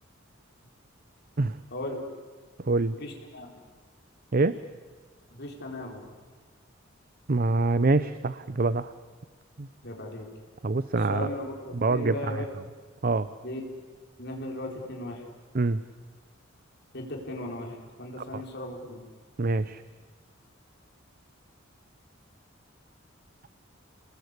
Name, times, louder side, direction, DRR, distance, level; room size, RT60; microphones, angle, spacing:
voice 1, 1.7-2.0 3.0-3.5 5.3-6.1 9.8-10.3 11.1-12.5 13.4-13.7 14.2-15.2 16.9-19.0, left 1 dB, 60° left, 1 dB, 4.5 m, -37 dB
voice 2, 2.6-3.0 4.3-4.6 7.3-8.9 9.6-9.7 10.6-11.3 11.7-12.4 13.0-13.3 15.5-15.8 18.3-18.4 19.4-19.8, right 3 dB, 45° right, 14 dB, 0.7 m, -25 dB
30.0 x 20.0 x 8.3 m, 1.5 s
head